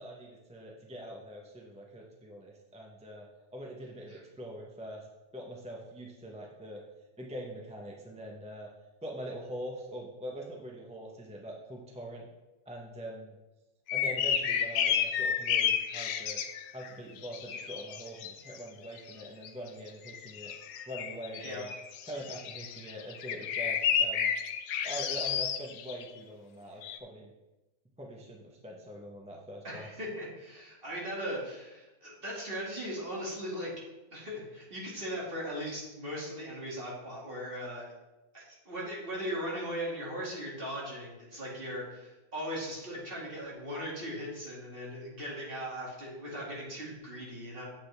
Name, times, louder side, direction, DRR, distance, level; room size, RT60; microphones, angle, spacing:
voice 1, 0.0-3.3 3.5-5.1 5.3-6.8 7.2-8.7 9.0-12.3 12.7-13.4 13.9-16.4 16.7-20.5 20.9-21.7 22.1-24.3 24.8-27.3 28.0-29.9, equal, 5° right, -1 dB, 0.7 m, -43 dB
sound 1, 13.9-16.9 17.2-18.6 19.0-19.7 20.1-26.0 26.8-27.0, left 8 dB, 90° left, 1.2 m, -31 dB
voice 2, 29.6-33.7 34.1-37.9 38.3-47.7, equal, 35° right, -5 dB, 2.5 m, -38 dB
8.7 x 7.6 x 3.4 m, 1.1 s
omnidirectional pair, 1.7 m